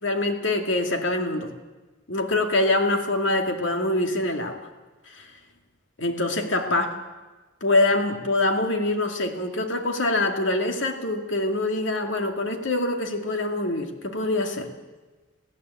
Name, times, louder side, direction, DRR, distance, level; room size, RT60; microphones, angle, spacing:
voice 1, 0.0-1.5 2.1-4.7 5.1-5.3 6.0-6.9 7.6-14.7, left 2 dB, 70° left, 4 dB, 2.4 m, -24 dB
20.0 x 15.5 x 8.4 m, 1.2 s
head